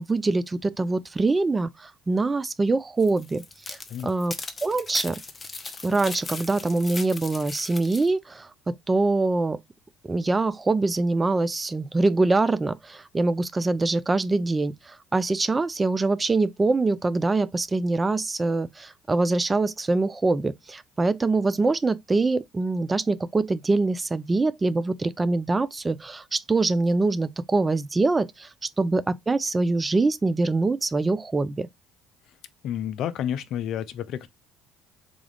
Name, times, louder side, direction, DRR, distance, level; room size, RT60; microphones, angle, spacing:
voice 1, 0.0-3.8 4.0-4.3 4.6-5.2 5.8-9.6 10.1-14.7 15.1-28.5 28.8-31.7, right 3 dB, 25° right, 0.4 m, -24 dB
sound 1, 3.0-8.1, left 4 dB, 30° left, 0.6 m, -38 dB
voice 2, 32.6-34.3, left 10 dB, 65° left, 0.4 m, -30 dB
3.7 x 2.3 x 3.4 m
hypercardioid pair, 70°, 0 cm